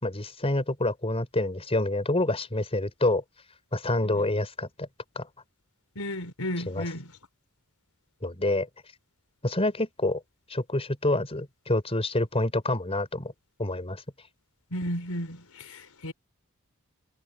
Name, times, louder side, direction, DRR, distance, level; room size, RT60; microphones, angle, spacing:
voice 1, 0.0-3.2 3.7-4.9 5.1-5.3 6.7-6.9 8.2-8.7 9.4-10.2 10.5-13.3 13.6-14.0, left 2 dB, 25° left, 4.4 m, -27 dB
voice 2, 5.9-7.1 14.7-16.1, equal, 85° left, 4.8 m, -34 dB
head